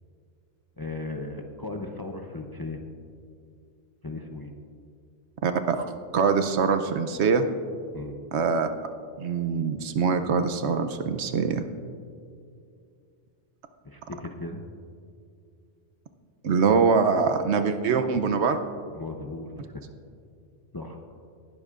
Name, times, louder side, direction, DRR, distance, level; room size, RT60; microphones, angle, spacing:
voice 1, 0.8-2.8 4.0-4.5 7.9-8.1 13.8-14.6 18.9-19.8 20.7-21.0, left 2 dB, 25° left, 3 dB, 0.6 m, -36 dB
voice 2, 5.4-7.5 8.3-8.7 9.2-11.6 16.4-18.6, right 5 dB, 70° right, 8 dB, 1.0 m, -23 dB
19.0 x 12.0 x 2.5 m, 2.4 s
omnidirectional pair, 1.2 m